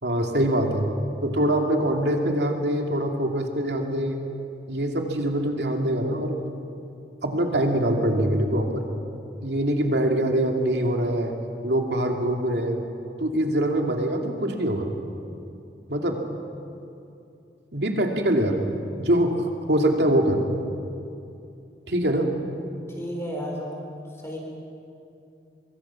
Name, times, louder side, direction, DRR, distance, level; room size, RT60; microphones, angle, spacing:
voice 1, 0.0-0.9 1.2-4.2 4.7-6.4 7.2-8.8 9.4-11.4 11.6-12.8 13.2-14.9 15.9-16.2 17.7-18.6 19.0-20.4 21.9-22.3, right 1 dB, 75° right, 2 dB, 2.6 m, -24 dB
voice 2, 22.9-23.7 24.2-24.4, equal, 15° left, -1 dB, 4.3 m, -32 dB
24.0 x 23.5 x 5.9 m, 2.7 s
head